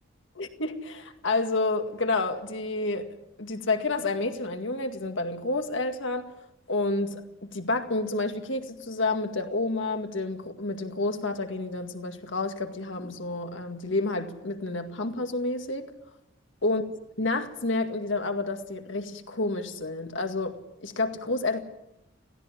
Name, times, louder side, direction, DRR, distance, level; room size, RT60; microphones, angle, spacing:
voice 1, 0.4-3.1 3.4-6.3 6.7-15.9 16.6-16.8 17.2-21.6, left 2 dB, 65° left, 2.0 m, -29 dB
16.5 x 16.0 x 9.9 m
head